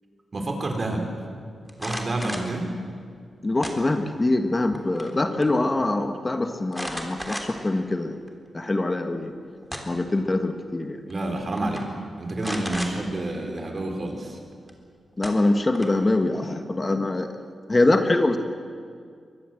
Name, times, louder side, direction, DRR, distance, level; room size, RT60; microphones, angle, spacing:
voice 1, 0.3-1.1 1.8-2.8 11.1-11.8 12.2-14.4, right 2 dB, 40° right, 3 dB, 4.6 m, -29 dB
sound 1, 1.7-2.5 3.6-4.2 4.6-5.2 5.4-5.5 6.7-7.7 8.3-8.4 9.4-10.1 11.1-11.3 11.6-11.8 12.4-12.9 14.7-14.8 15.2-16.1, equal, ahead, 3.4 m, -34 dB
voice 2, 3.4-8.2 8.5-9.3 9.8-11.0 15.2-17.3 17.7-18.4, left 2 dB, 25° left, 7 dB, 1.6 m, -23 dB
23.5 x 19.5 x 7.8 m, 2.1 s
cardioid pair, 75°, 0 cm